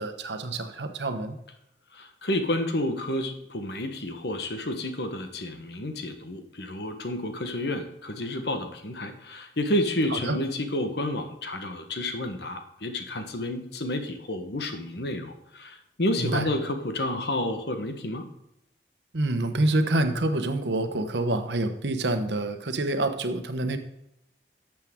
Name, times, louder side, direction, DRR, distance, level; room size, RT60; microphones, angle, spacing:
voice 1, 0.0-1.4 10.1-10.4 16.2-16.4 19.1-23.8, right 2 dB, 80° right, 8 dB, 1.0 m, -27 dB
voice 2, 1.9-18.3, left 1 dB, 70° left, 6 dB, 1.3 m, -30 dB
12.0 x 7.5 x 3.7 m, 0.84 s
head